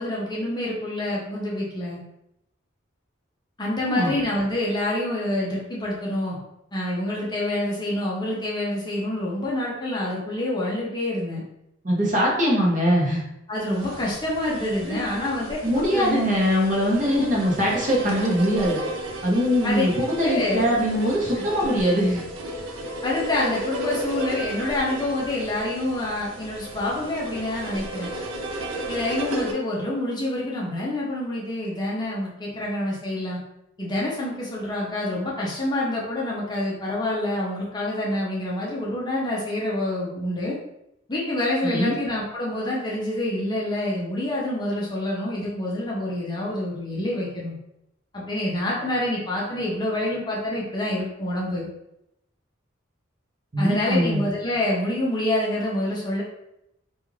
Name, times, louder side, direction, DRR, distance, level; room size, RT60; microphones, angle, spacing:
voice 1, 0.0-2.0 3.6-6.4 6.7-11.4 13.5-16.2 17.1-17.2 19.6-19.8 20.2-20.6 23.0-28.1 28.9-33.4 33.8-40.6 41.1-47.6 48.1-51.7 53.6-56.2, left 1 dB, 20° left, -5 dB, 0.5 m, -27 dB
voice 2, 11.8-13.2 14.8-15.0 15.6-18.8 19.2-22.2 41.6-42.0 53.5-54.2, equal, 40° right, -4 dB, 0.7 m, -22 dB
sound 1, 13.7-29.5, right 1 dB, 85° right, 0.5 m, -34 dB
2.4 x 2.3 x 3.1 m, 0.83 s
head